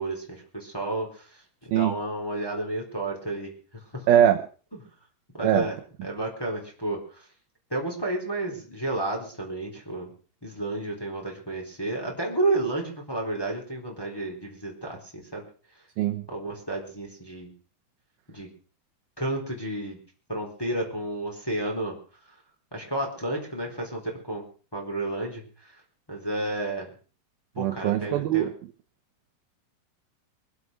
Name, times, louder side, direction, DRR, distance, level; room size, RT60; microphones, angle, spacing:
voice 1, 0.0-3.5 3.9-4.1 5.3-7.3 7.7-10.1 10.4-15.4 16.3-17.5 18.3-18.5 19.2-20.0 20.3-22.0 22.7-24.4 24.7-25.8 26.1-26.9 27.6-28.5, right 2 dB, 5° left, -1 dB, 3.7 m, -31 dB
voice 2, 4.1-4.4 5.4-5.6 16.0-16.2 27.6-28.5, right 11 dB, 75° right, 6 dB, 2.4 m, -22 dB
23.5 x 8.3 x 6.4 m, 0.40 s
omnidirectional pair, 5.1 m